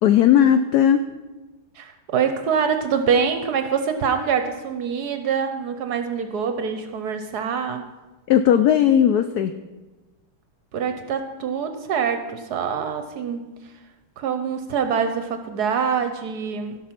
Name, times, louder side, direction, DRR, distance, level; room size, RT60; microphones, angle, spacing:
voice 1, 0.0-1.0 8.3-9.6, left 9 dB, 90° left, 9 dB, 0.8 m, -17 dB
voice 2, 1.7-7.9 10.7-13.4 14.2-16.8, right 6 dB, 65° right, 8 dB, 1.0 m, -25 dB
15.5 x 5.9 x 5.8 m, 1.2 s
omnidirectional pair, 2.2 m